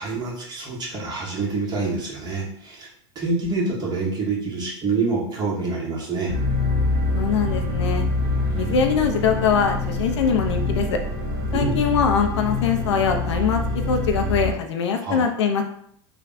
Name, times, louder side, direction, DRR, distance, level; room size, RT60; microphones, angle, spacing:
voice 1, 0.0-2.9 3.1-6.3 11.5-11.8 15.0-15.2, right 3 dB, 30° right, -4 dB, 1.6 m, -26 dB
sound 1, 6.3-14.5, left 2 dB, 50° right, 1.5 m, -25 dB
voice 2, 7.1-8.1 8.5-11.0 11.5-13.6 13.9-15.6, left 6 dB, 75° left, 4 dB, 0.6 m, -22 dB
3.4 x 2.4 x 4.0 m, 0.65 s
hypercardioid pair, 95°, 15 cm